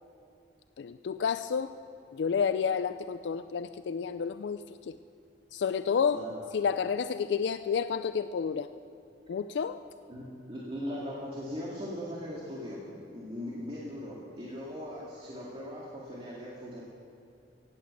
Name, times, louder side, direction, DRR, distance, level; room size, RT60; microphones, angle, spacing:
voice 1, 0.8-1.7 2.1-4.9 5.5-6.2 6.5-8.7 9.3-9.8, left 6 dB, 80° left, 11 dB, 0.4 m, -30 dB
voice 2, 10.1-16.8, equal, 30° right, -6 dB, 2.0 m, -39 dB
16.5 x 8.6 x 8.1 m, 2.5 s
head